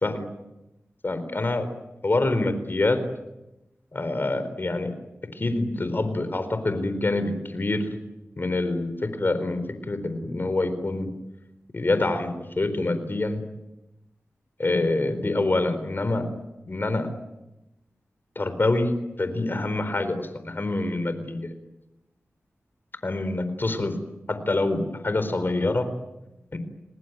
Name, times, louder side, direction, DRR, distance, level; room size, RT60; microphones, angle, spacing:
voice 1, 1.0-1.7 2.0-3.0 3.9-4.9 5.3-7.9 8.4-9.6 9.9-11.1 11.7-13.4 14.6-16.3 16.7-17.1 18.4-21.5 23.0-24.0 24.3-25.9 26.5-26.6, left 2 dB, 45° left, 10 dB, 4.3 m, -26 dB
27.5 x 20.0 x 9.4 m, 0.97 s
cardioid pair, 60°, 5 cm